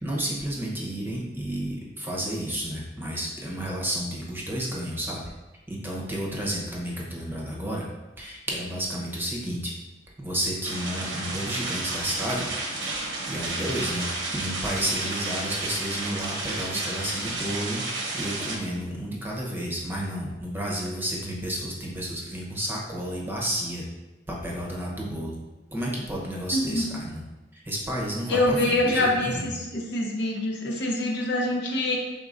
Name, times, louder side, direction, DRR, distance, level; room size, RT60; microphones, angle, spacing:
voice 1, 0.0-5.2 5.7-7.8 8.2-9.7 10.2-12.5 12.9-14.1 14.3-17.8 18.1-23.9 24.3-25.4 25.7-27.2 27.5-29.5, equal, 10° right, -3 dB, 0.8 m, -31 dB
sound 1, 10.6-18.6, right 2 dB, 85° right, 0.9 m, -32 dB
voice 2, 26.5-26.9 28.3-32.0, left 1 dB, 70° left, -1 dB, 0.8 m, -25 dB
5.2 x 3.8 x 2.5 m, 1.1 s
head